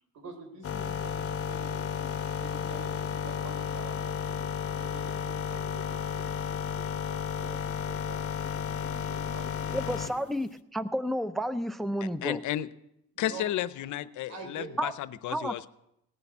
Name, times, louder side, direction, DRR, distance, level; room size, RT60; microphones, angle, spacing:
voice 1, 0.1-2.1 2.4-4.4 4.8-8.2 8.5-10.3 13.1-13.4 13.8-14.0 14.3-14.8, right 4 dB, 75° right, 5 dB, 3.5 m, -47 dB
sound 1, 0.6-10.2, left 7 dB, 50° left, 0.9 m, -33 dB
voice 2, 9.7-12.4 14.8-14.9 15.3-15.7, equal, ahead, 13 dB, 0.6 m, -31 dB
voice 3, 12.2-12.7 13.2-15.7, left 12 dB, 75° left, 16 dB, 0.7 m, -32 dB
18.0 x 6.9 x 8.4 m, 0.81 s
cardioid pair, 90°, 30 cm